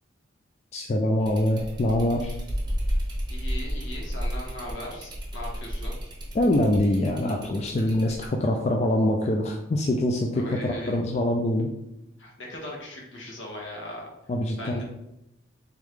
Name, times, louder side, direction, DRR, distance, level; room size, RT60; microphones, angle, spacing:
voice 1, 0.7-2.4 6.3-11.7 14.3-14.8, left 1 dB, 35° left, 2 dB, 0.3 m, -24 dB
sound 1, 1.2-8.3, equal, 20° right, 0.8 m, -32 dB
voice 2, 3.3-5.9 10.3-11.0 12.2-14.1 14.6-14.8, left 1 dB, 80° left, -1 dB, 1.1 m, -39 dB
3.5 x 3.5 x 3.2 m, 0.87 s
head